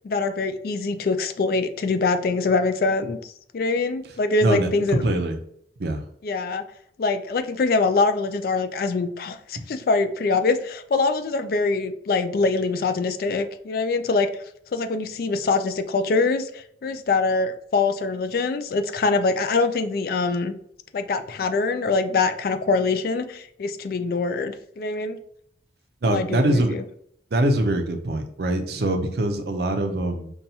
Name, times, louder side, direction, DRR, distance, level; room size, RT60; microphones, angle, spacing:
voice 1, 0.0-5.0 6.2-6.6 7.0-14.3 14.7-20.5 20.9-25.2 26.1-26.8, left 3 dB, 50° left, 9 dB, 0.3 m, -24 dB
voice 2, 4.4-5.4 5.8-6.0 26.0-26.7 27.3-30.3, right 1 dB, 55° right, 6 dB, 0.5 m, -23 dB
5.4 x 2.3 x 2.7 m, 0.68 s
head